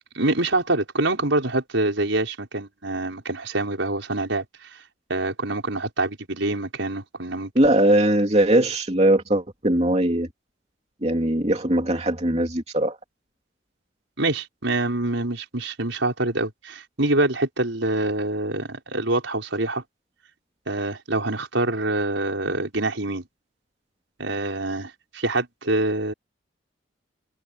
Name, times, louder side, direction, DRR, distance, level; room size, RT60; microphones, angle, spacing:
voice 1, 0.1-4.8 5.1-7.5 14.2-19.8 20.7-23.2 24.2-26.1, right 2 dB, 80° right, 5.3 m, -25 dB
voice 2, 7.5-10.3 11.0-13.0, right 1 dB, 35° right, 3.0 m, -20 dB
head